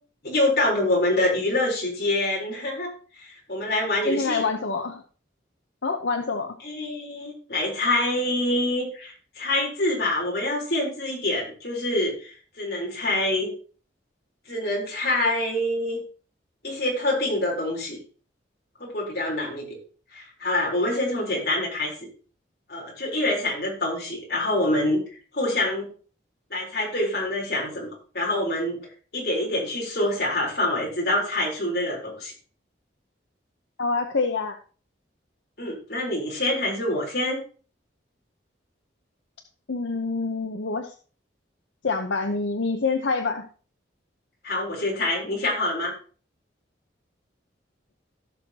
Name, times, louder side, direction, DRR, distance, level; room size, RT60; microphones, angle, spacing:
voice 1, 0.2-4.4 6.6-13.5 14.5-16.0 16.6-18.0 18.8-19.8 20.1-21.9 22.7-25.0 25.3-25.9 26.5-28.8 29.1-32.3 35.6-37.4 44.4-45.9, left 1 dB, 55° left, -2 dB, 3.7 m, -26 dB
voice 2, 4.0-5.0 5.8-6.6 33.8-34.6 39.7-40.9 41.8-43.5, left 4 dB, 80° left, 5 dB, 0.8 m, -26 dB
16.5 x 6.3 x 2.9 m, 0.39 s
head